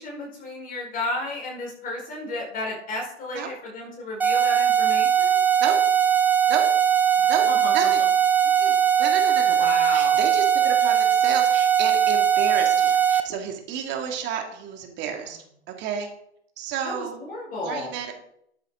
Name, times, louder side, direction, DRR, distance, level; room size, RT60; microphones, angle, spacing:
voice 1, 0.0-5.4 7.2-7.7 9.6-10.2 16.8-17.9, left 2 dB, 25° left, -2 dB, 5.1 m, -33 dB
sound 1, 4.2-13.2, right 9 dB, 5° right, 0.4 m, -20 dB
voice 2, 7.7-8.0 8.6-15.4 15.8-16.1 16.6-17.2 17.6-18.2, right 8 dB, 30° right, 3 dB, 2.5 m, -31 dB
13.0 x 8.3 x 3.9 m, 0.71 s
hypercardioid pair, 125°, 35 cm